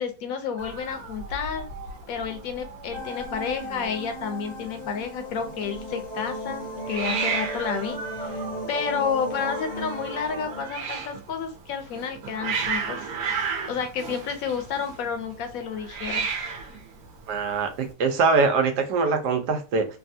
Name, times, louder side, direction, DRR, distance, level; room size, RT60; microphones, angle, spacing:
voice 1, 0.0-1.6 2.1-13.1 13.7-16.3, left 6 dB, 70° left, 7 dB, 0.9 m, -31 dB
Hiss, 0.6-17.9, right 5 dB, 70° right, 1.2 m, -35 dB
sound 1, 2.9-10.6, left 1 dB, 40° left, 0.6 m, -35 dB
voice 2, 17.3-19.9, right 4 dB, 90° right, 5 dB, 1.3 m, -23 dB
3.3 x 2.3 x 2.6 m, 0.32 s
omnidirectional pair, 1.7 m